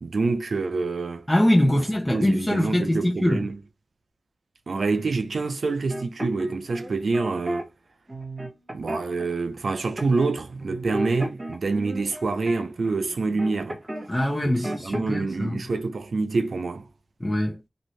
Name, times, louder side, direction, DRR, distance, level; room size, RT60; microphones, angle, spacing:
voice 1, 0.0-1.3 1.7-1.8 2.1-3.6 4.7-7.7 8.7-13.8 14.4-16.9, right 3 dB, 80° right, 0.5 m, -27 dB
voice 2, 1.3-3.5 14.1-15.6 17.2-17.6, left 1 dB, 20° left, 0.8 m, -23 dB
sound 1, 5.9-7.6 8.1-9.3 10.0-10.3 10.6-14.1 14.3-15.2, right 1 dB, 40° right, 1.2 m, -34 dB
2.6 x 2.6 x 3.2 m
cardioid pair, 50°, 0 cm